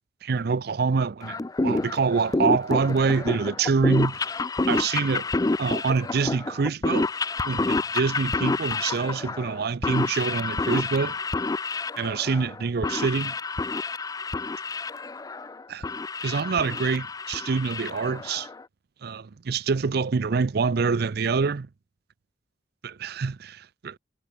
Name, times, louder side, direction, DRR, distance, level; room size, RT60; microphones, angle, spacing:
voice 1, 0.2-4.2 4.7-5.3 5.6-7.1 7.4-11.2 12.0-13.3 15.7-15.8 16.2-18.5 19.0-21.7 22.8-24.0, right 5 dB, 55° right, 0.5 m, -26 dB
sound 1, 1.2-18.6, left 3 dB, 20° left, 0.4 m, -29 dB
head